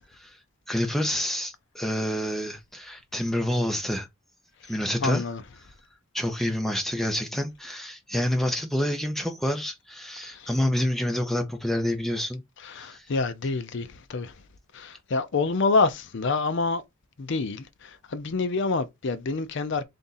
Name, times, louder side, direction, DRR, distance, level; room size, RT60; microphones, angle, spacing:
voice 1, 0.7-4.1 4.7-5.2 6.1-12.4 12.8-13.1, left 1 dB, ahead, 0.6 m, -28 dB
voice 2, 5.0-5.4 10.2-10.5 12.6-14.4 14.7-16.8 17.2-19.8, left 3 dB, 55° left, 0.5 m, -27 dB
3.5 x 2.6 x 3.9 m
head